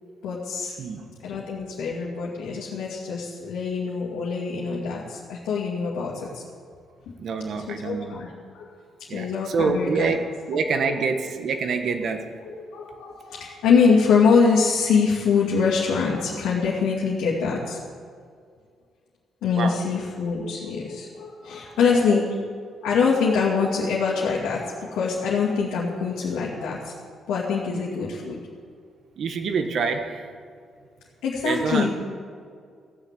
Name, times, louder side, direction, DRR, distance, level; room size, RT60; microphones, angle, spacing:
voice 1, 0.2-0.7 1.2-6.4 7.7-8.3 8.5-8.7 9.1-10.1 12.5-17.8 19.4-22.2 22.8-26.9 27.3-28.4 31.2-31.9, left 5 dB, 85° left, -6 dB, 2.4 m, -24 dB
voice 2, 7.2-8.2 9.1-12.4 19.6-19.9 21.8-22.3 29.2-30.3 31.4-31.9, right 4 dB, 65° right, 6 dB, 1.4 m, -26 dB
15.5 x 6.6 x 8.3 m, 2.2 s
cardioid pair, 90°, 0 cm